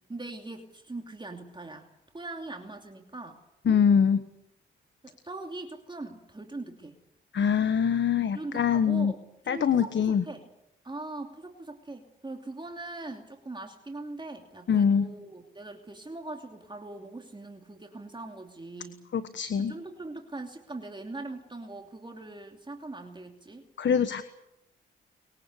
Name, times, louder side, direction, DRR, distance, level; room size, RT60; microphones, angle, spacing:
voice 1, 0.1-3.8 5.0-7.0 8.3-9.2 9.4-10.4 10.8-19.1 19.7-23.7, right 2 dB, 20° right, 3 dB, 2.7 m, -41 dB
voice 2, 3.7-4.2 7.3-9.1 9.5-10.2 14.7-15.1 19.1-19.7 23.8-24.2, left 7 dB, 60° left, 12 dB, 1.4 m, -24 dB
23.0 x 22.0 x 8.3 m, 0.83 s
cardioid pair, 65°, 21 cm